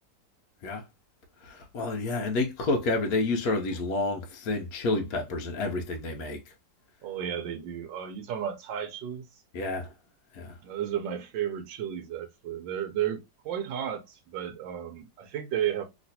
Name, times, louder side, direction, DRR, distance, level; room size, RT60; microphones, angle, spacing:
voice 1, 1.4-6.5 9.5-9.9 10.3-10.6, left 2 dB, 65° left, 1.0 m, -29 dB
voice 2, 7.0-9.4 10.6-15.8, right 9 dB, 85° right, 1.3 m, -33 dB
3.1 x 2.9 x 2.7 m
omnidirectional pair, 2.0 m